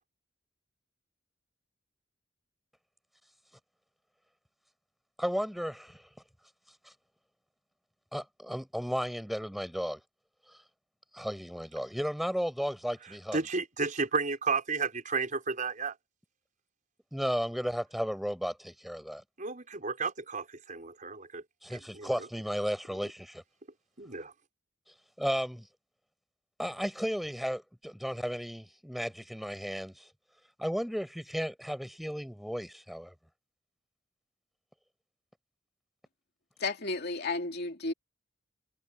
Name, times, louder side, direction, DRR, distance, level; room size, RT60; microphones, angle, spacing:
voice 1, 5.2-6.0 8.1-10.0 11.1-13.4 17.1-19.2 21.6-23.4 25.2-25.7 26.6-30.1 30.6-33.1, equal, ahead, 6.8 m, -34 dB
voice 2, 13.3-16.0 19.4-21.4 21.9-22.1 24.0-24.3, right 4 dB, 40° right, 5.3 m, -32 dB
voice 3, 36.6-37.9, left 3 dB, 55° left, 2.6 m, -33 dB
head